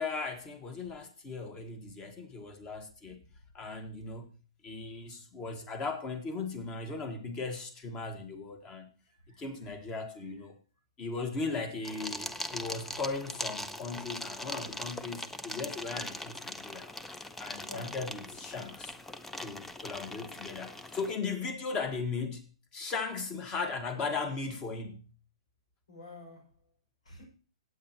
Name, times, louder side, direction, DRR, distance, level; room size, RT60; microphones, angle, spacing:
voice 1, 0.0-3.3 3.5-4.3 4.6-8.9 9.4-10.6 11.0-16.9 17.4-18.9 19.4-22.4 22.7-25.1, left 4 dB, 20° left, 1.6 m, -37 dB
voice 2, 9.1-9.8 17.7-18.0 25.9-26.5 27.0-27.2, left 1 dB, 90° left, 6.0 m, -49 dB
sound 1, 11.8-21.1, left 1 dB, 5° left, 0.5 m, -41 dB
17.0 x 8.4 x 3.0 m
hypercardioid pair, 150°, 3 cm